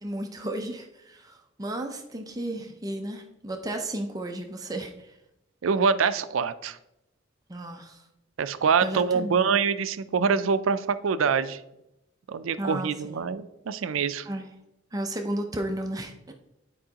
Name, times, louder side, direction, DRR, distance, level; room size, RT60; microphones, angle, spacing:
voice 1, 0.0-5.2 7.5-8.1 8.8-9.4 12.6-13.3 14.2-14.5 14.9-16.3, right 1 dB, 20° right, 3 dB, 0.5 m, -34 dB
voice 2, 5.6-6.8 8.4-11.6 12.3-14.3, right 5 dB, 80° right, 13 dB, 0.4 m, -25 dB
10.0 x 4.6 x 2.9 m, 0.88 s
head